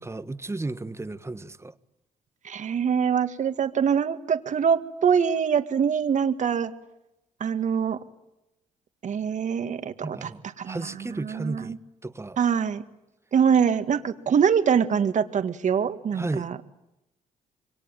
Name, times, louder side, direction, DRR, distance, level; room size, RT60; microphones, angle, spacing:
voice 1, 0.0-1.7 10.0-12.4 16.1-16.5, right 2 dB, 20° right, 1.3 m, -34 dB
voice 2, 2.4-6.7 7.4-8.0 9.0-10.3 10.6-11.8 12.4-12.8 13.3-16.6, right 7 dB, 55° right, 1.9 m, -24 dB
27.0 x 23.5 x 9.1 m
supercardioid pair, 65°, 15 cm